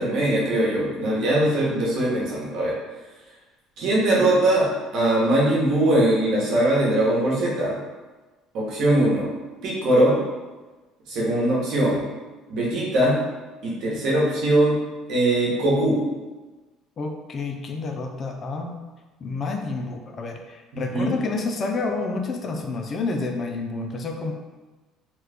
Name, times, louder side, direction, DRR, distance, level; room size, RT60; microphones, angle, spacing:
voice 1, 0.0-2.7 3.8-7.8 8.5-9.3 9.6-10.2 11.1-12.0 12.5-13.2 13.6-14.8 15.1-16.0 20.7-21.1, right 1 dB, 65° right, -5 dB, 1.1 m, -21 dB
voice 2, 17.0-18.7 19.2-24.3, left 3 dB, 40° left, 4 dB, 0.4 m, -29 dB
3.0 x 2.4 x 3.4 m, 1.2 s
supercardioid pair, 100°, 0 cm